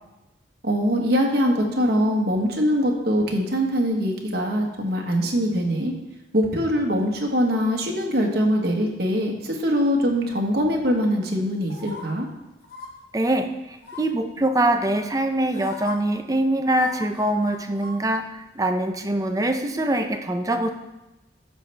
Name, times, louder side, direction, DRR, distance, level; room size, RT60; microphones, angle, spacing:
voice 1, 0.6-5.9 6.3-12.3, equal, 55° right, 0 dB, 1.4 m, -22 dB
sound 1, 11.7-12.0 12.6-12.9 13.8-14.2 15.1-15.2 15.5-16.0 16.7-18.0 18.3-18.4, left 4 dB, 55° left, 1.4 m, -38 dB
voice 2, 13.1-20.7, right 1 dB, 20° right, 5 dB, 0.6 m, -23 dB
13.0 x 5.6 x 3.4 m, 1.0 s
head